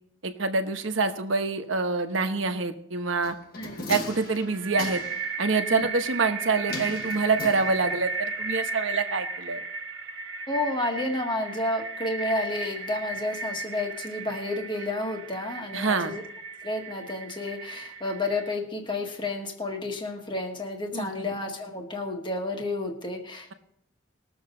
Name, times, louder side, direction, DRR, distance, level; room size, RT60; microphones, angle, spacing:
voice 1, 0.2-3.3 3.9-5.0 5.4-9.6 15.7-16.1 20.9-21.3, right 4 dB, 85° right, 7 dB, 1.1 m, -26 dB
sound 1, 3.2-5.3 6.7-8.1 8.4-8.5, left 2 dB, 50° left, 1.4 m, -38 dB
sound 2, 4.2-18.5, right 3 dB, 65° right, 1.3 m, -35 dB
voice 2, 10.5-16.2 16.6-23.5, left 2 dB, 25° left, 2 dB, 1.6 m, -31 dB
20.5 x 7.2 x 3.9 m, 0.70 s
head